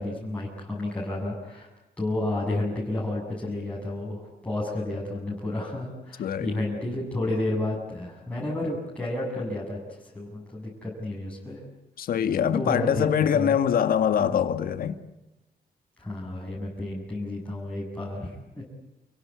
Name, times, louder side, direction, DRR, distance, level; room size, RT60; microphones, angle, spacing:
voice 1, 0.0-1.7 2.0-11.6 12.5-13.1 13.3-13.6 16.0-18.6, left 2 dB, 10° left, 7.4 m, -31 dB
voice 2, 6.2-6.5 12.0-14.9, left 8 dB, 70° left, 1.9 m, -24 dB
28.5 x 18.0 x 9.6 m
cardioid pair, 125°, 15 cm